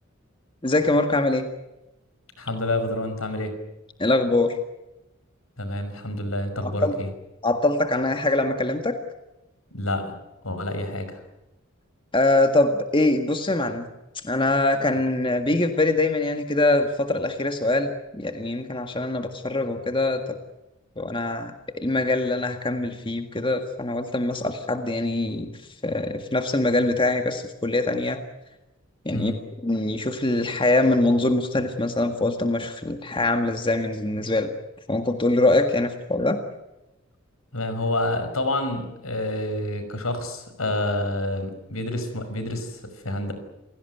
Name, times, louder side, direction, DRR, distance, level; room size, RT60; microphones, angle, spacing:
voice 1, 0.6-1.5 4.0-4.6 6.6-7.0 7.4-9.0 12.1-13.9 14.2-20.2 21.0-25.5 25.8-28.2 29.1-29.3 29.6-34.5 34.9-36.4, left 2 dB, 25° left, 6 dB, 1.8 m, -23 dB
voice 2, 2.4-3.5 5.6-7.1 9.7-10.1 10.4-11.2 14.9-15.0 29.1-29.4 37.5-43.3, left 1 dB, 85° left, 9 dB, 5.5 m, -28 dB
28.5 x 17.5 x 9.3 m, 0.95 s
head